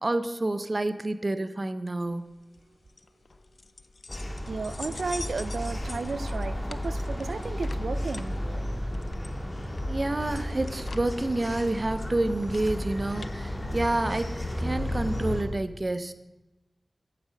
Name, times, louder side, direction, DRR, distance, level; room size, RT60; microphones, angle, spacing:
voice 1, 0.0-2.3 9.9-16.1, right 2 dB, 40° right, 11 dB, 0.6 m, -29 dB
sound 1, 2.0-13.3, left 3 dB, 60° left, 0.5 m, -46 dB
Сity in the morning - downtown area, 4.1-15.4, left 1 dB, 25° left, 1.8 m, -33 dB
voice 2, 4.5-8.3, right 4 dB, 80° right, 14 dB, 0.5 m, -33 dB
9.1 x 7.6 x 6.2 m, 1.0 s
wide cardioid pair, 65°, 0 cm